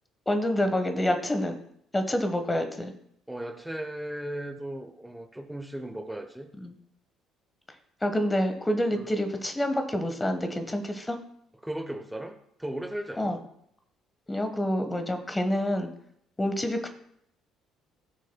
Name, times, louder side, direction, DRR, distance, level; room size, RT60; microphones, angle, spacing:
voice 1, 0.3-1.5 1.9-2.9 6.6-6.7 8.0-11.2 13.2-13.4 14.3-15.9 16.4-16.9, left 1 dB, 15° left, 7 dB, 1.3 m, -27 dB
voice 2, 3.3-6.5 8.9-9.1 11.6-13.4, right 1 dB, 5° right, 6 dB, 1.0 m, -36 dB
17.0 x 6.3 x 2.3 m, 0.72 s
figure-of-eight pair, 50°, 0 cm